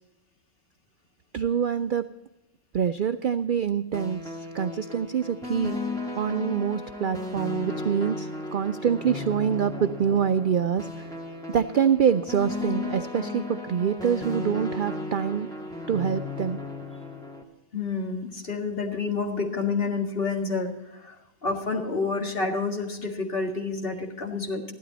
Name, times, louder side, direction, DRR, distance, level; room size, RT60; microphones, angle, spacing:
voice 1, 1.3-2.0 2.7-5.8 6.1-11.1 11.5-15.5 15.9-16.6, right 8 dB, 85° right, 10 dB, 0.4 m, -25 dB
sound 1, 3.9-17.4, left 3 dB, 5° left, 1.8 m, -35 dB
voice 2, 17.7-21.2 21.4-24.6, left 4 dB, 45° left, 2 dB, 2.1 m, -29 dB
15.5 x 12.0 x 4.0 m, 0.99 s
omnidirectional pair, 1.5 m